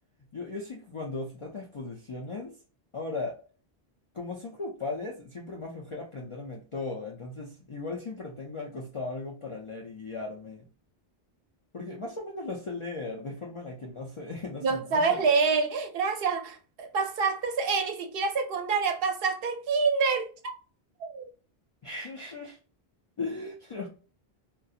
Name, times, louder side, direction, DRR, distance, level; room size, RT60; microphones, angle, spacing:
voice 1, 0.3-2.6 2.9-3.4 4.1-10.7 11.7-15.2 21.8-22.6 23.2-23.9, left 3 dB, 55° left, 0.3 m, -37 dB
voice 2, 14.6-20.5 21.0-21.3, right 4 dB, 70° right, 0.7 m, -27 dB
2.4 x 2.2 x 2.6 m
omnidirectional pair, 1.0 m